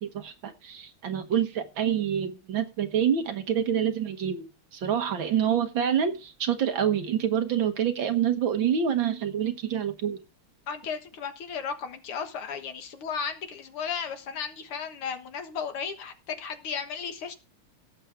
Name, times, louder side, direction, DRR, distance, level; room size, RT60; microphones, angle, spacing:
voice 1, 0.0-4.5 4.7-10.2, right 8 dB, 65° right, 1.9 m, -27 dB
voice 2, 10.7-17.3, left 6 dB, 80° left, 2.3 m, -34 dB
17.0 x 7.7 x 3.5 m
omnidirectional pair, 2.4 m